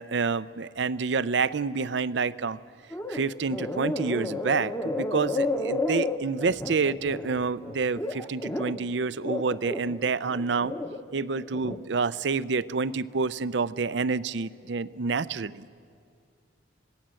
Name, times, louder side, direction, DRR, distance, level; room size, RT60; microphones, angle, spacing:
voice 1, 0.0-2.6 3.1-10.7 11.1-15.7, right 4 dB, 65° right, 16 dB, 0.5 m, -28 dB
sound 1, 2.9-3.2 3.5-8.8 9.2-11.0 11.4-11.8, left 2 dB, 15° left, 1.0 m, -31 dB
26.5 x 19.0 x 7.6 m, 2.3 s
head